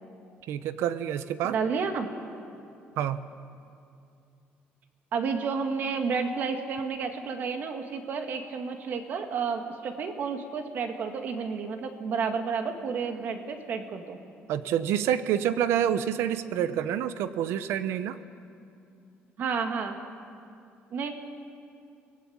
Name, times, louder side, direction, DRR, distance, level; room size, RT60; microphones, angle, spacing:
voice 1, 0.5-1.6 3.0-3.2 14.5-18.2, right 10 dB, 80° right, 12 dB, 0.9 m, -27 dB
voice 2, 1.5-2.1 5.1-14.2 19.4-20.0 20.9-21.1, right 5 dB, 45° right, 5 dB, 2.0 m, -31 dB
23.5 x 18.5 x 8.8 m, 2.5 s
cardioid pair, 175°, 4 cm